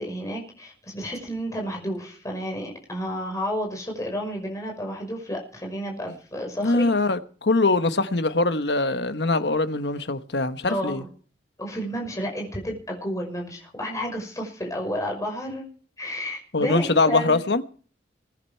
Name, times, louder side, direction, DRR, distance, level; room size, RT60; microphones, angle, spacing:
voice 1, 0.0-6.9 10.7-11.1 11.6-15.7 16.0-17.4, equal, 20° left, 5.8 m, -31 dB
voice 2, 6.6-11.0 16.5-17.6, left 3 dB, 70° left, 1.2 m, -22 dB
21.5 x 10.5 x 4.6 m
head